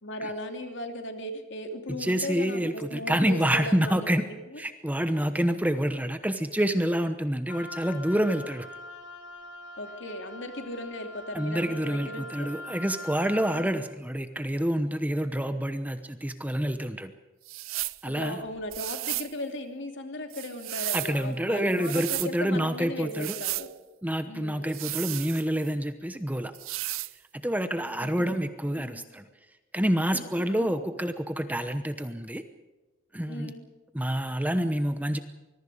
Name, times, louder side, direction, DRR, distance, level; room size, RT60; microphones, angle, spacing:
voice 1, 0.0-4.1 9.8-12.5 18.1-23.7 24.3-24.7 28.0-28.4 28.8-29.0 30.1-30.2 30.5-30.7 33.3-33.7, left 1 dB, 60° left, 5 dB, 2.9 m, -37 dB
voice 2, 2.0-4.3 4.6-8.7 11.3-17.1 18.0-18.4 20.9-23.4 24.0-26.5 27.3-29.3 29.7-32.4 33.1-33.5 33.9-35.2, equal, 10° right, 9 dB, 0.9 m, -27 dB
Wind instrument woodwind instrument, 7.5-13.8, left 2 dB, 75° left, 2.8 m, -42 dB
sound 1, 17.5-18.0 18.7-19.3 20.3-21.2 21.7-22.3 23.1-23.7 24.7-25.7 26.5-27.1, right 18 dB, 80° right, 0.6 m, -34 dB
25.0 x 22.0 x 5.1 m, 1.2 s
head